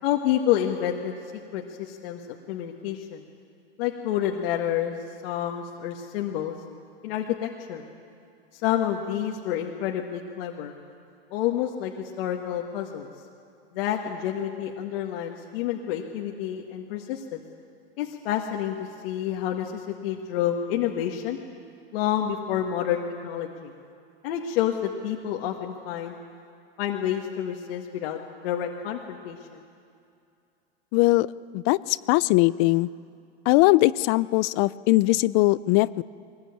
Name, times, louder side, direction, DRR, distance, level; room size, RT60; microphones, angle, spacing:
voice 1, 0.0-1.2 1.5-3.2 3.8-5.0 5.2-6.5 7.0-7.8 8.5-10.7 11.3-13.1 13.7-17.4 18.0-21.4 21.9-23.7 24.2-26.2 26.8-29.6, left 10 dB, 65° left, 0 dB, 1.9 m, -29 dB
voice 2, 30.9-31.3 31.5-32.9 33.5-36.0, left 20 dB, 45° left, 19 dB, 0.5 m, -20 dB
22.0 x 20.0 x 8.9 m, 2.5 s
hypercardioid pair, 120°, 32 cm